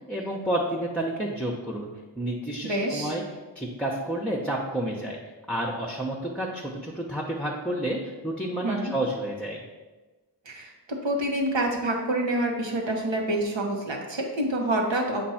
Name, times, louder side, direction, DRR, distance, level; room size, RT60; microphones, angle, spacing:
voice 1, 0.1-1.9 2.2-3.2 3.5-5.2 5.5-9.6, right 1 dB, ahead, -3 dB, 0.7 m, -30 dB
voice 2, 2.6-3.1 8.6-8.9 10.5-15.3, right 1 dB, 80° right, 0 dB, 1.1 m, -27 dB
7.4 x 2.6 x 5.6 m, 1.2 s
wide cardioid pair, 45°, 44 cm